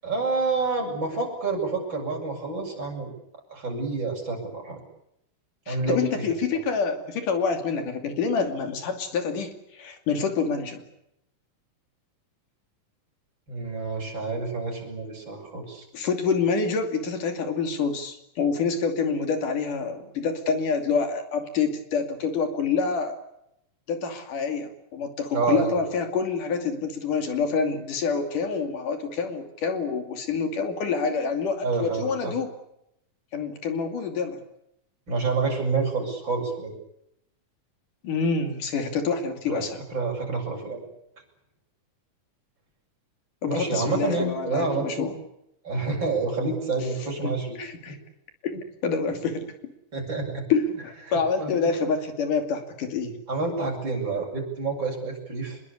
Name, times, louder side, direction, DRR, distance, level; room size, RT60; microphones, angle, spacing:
voice 1, 0.0-3.1 3.5-4.8 5.7-6.3 13.5-15.9 25.3-25.8 31.6-32.3 35.1-36.7 39.5-40.9 43.5-45.1 45.6-47.6 47.9-48.0 49.9-50.4 51.1-51.8 53.3-55.6, right 3 dB, 35° right, 1 dB, 7.9 m, -28 dB
voice 2, 5.7-10.8 15.9-23.2 23.9-32.5 33.3-34.4 38.0-39.8 43.4-45.2 47.2-48.0 48.4-48.5 48.8-49.5 50.5-53.2, left 5 dB, 75° left, 7 dB, 4.2 m, -27 dB
25.5 x 22.0 x 8.5 m, 0.80 s
omnidirectional pair, 3.8 m